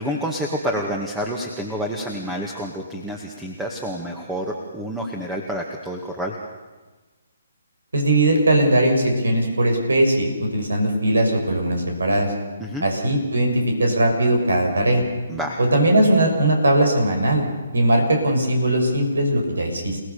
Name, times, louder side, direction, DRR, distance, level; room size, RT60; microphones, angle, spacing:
voice 1, 0.0-6.3 12.6-12.9 15.3-15.6, equal, 5° right, 1 dB, 2.1 m, -28 dB
voice 2, 7.9-12.3 12.8-15.0 15.6-17.4 17.7-20.0, right 1 dB, 85° right, 4 dB, 6.3 m, -19 dB
29.0 x 18.0 x 7.0 m, 1.3 s
hypercardioid pair, 145°, 0 cm